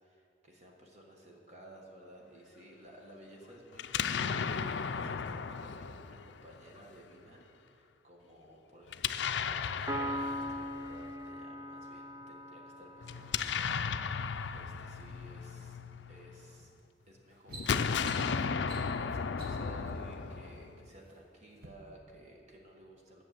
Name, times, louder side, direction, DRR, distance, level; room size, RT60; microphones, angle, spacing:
voice 1, 0.0-15.8 16.1-16.7 17.1-18.4 19.0-23.2, right 1 dB, 35° right, -1 dB, 1.4 m, -55 dB
Explosion, 3.8-6.8 8.9-11.1 13.0-16.4 17.5-20.9, left 6 dB, 70° left, 0.4 m, -35 dB
Piano, 9.9-13.5, equal, 20° right, 0.6 m, -39 dB
sound 1, 16.6-16.8 17.2-19.8 20.6-21.1 21.5-21.7, right 3 dB, 55° right, 1.2 m, -51 dB
11.0 x 6.5 x 7.5 m, 2.5 s
head